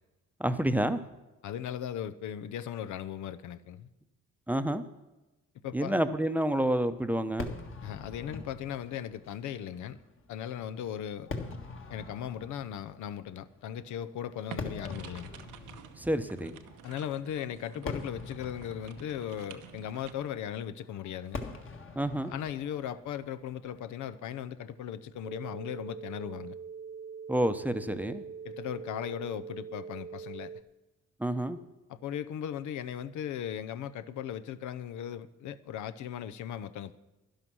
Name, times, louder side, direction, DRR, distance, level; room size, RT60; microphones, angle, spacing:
voice 1, 0.4-1.0 4.5-4.8 5.7-7.5 16.0-16.6 22.0-22.3 27.3-28.2 31.2-31.6, right 1 dB, 5° right, 0.7 m, -29 dB
voice 2, 1.4-3.9 5.6-6.0 7.8-10.0 10.3-11.3 11.9-15.3 16.8-21.4 22.3-26.6 28.4-30.5 31.9-37.0, left 9 dB, 75° left, 0.7 m, -37 dB
Fireworks, 7.4-24.7, left 3 dB, 45° left, 1.7 m, -44 dB
sound 1, 14.5-20.1, right 8 dB, 90° right, 1.0 m, -50 dB
sound 2, 25.2-30.6, right 6 dB, 40° right, 0.7 m, -43 dB
11.5 x 11.0 x 6.2 m
cardioid pair, 90°, 30 cm